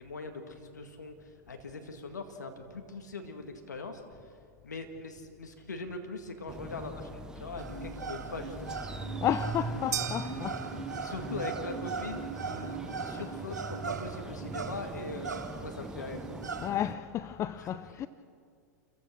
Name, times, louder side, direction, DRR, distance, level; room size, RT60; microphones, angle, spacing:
voice 1, 0.0-4.0 4.6-8.8 11.0-16.3 17.6-17.7, left 3 dB, 85° left, 1.9 m, -41 dB
sound 1, 6.5-16.9, right 3 dB, 10° right, 0.9 m, -41 dB
sound 2, 7.6-16.7, right 5 dB, 85° right, 1.7 m, -40 dB
voice 2, 9.2-10.6 16.6-18.1, left 11 dB, 30° left, 0.5 m, -32 dB
sound 3, 9.9-11.4, right 9 dB, 65° right, 1.8 m, -38 dB
28.5 x 15.0 x 6.3 m
hypercardioid pair, 95°, 9 cm